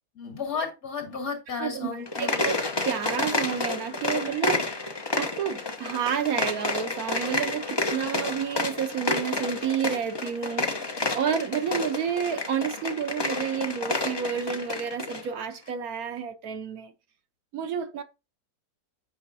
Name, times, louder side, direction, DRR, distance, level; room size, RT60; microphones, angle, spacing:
voice 1, 0.2-2.5, left 5 dB, 65° left, 2.8 m, -33 dB
voice 2, 1.6-2.6 2.8-4.7 5.2-10.9 11.1-16.9 17.5-18.0, right 8 dB, 70° right, 1.2 m, -30 dB
sound 1, 2.0-15.3, left 2 dB, 25° left, 0.5 m, -30 dB
8.5 x 5.6 x 2.7 m
omnidirectional pair, 1.7 m